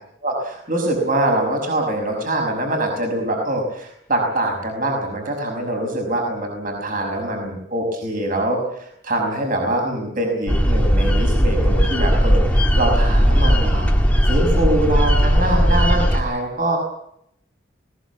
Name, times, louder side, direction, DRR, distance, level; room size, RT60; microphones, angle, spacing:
voice 1, 0.2-13.9 14.2-16.8, right 1 dB, 40° right, 2 dB, 5.9 m, -23 dB
sound 1, 10.5-16.2, equal, 5° left, 1.9 m, -17 dB
21.0 x 19.0 x 8.3 m, 0.71 s
head